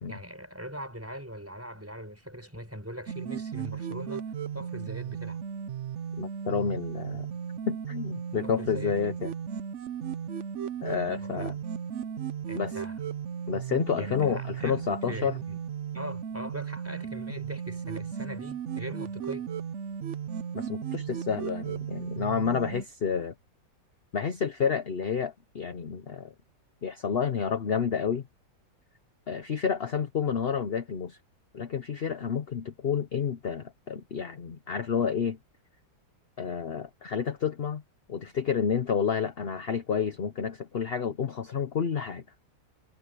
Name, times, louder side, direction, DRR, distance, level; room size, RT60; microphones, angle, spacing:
voice 1, 0.1-4.3 4.5-5.4 8.4-9.1 11.2-11.6 12.5-13.0 14.0-15.6 15.9-19.5, equal, 5° right, 6.8 m, -41 dB
sound 1, 3.1-22.8, right 8 dB, 55° right, 0.8 m, -36 dB
voice 2, 6.2-7.3 7.7-9.3 10.8-11.5 12.5-12.8 13.5-15.4 20.5-23.3 24.1-26.3 26.8-28.3 29.3-31.2 31.5-35.4 36.4-37.8 38.1-42.2, left 7 dB, 45° left, 0.8 m, -30 dB
omnidirectional pair, 2.0 m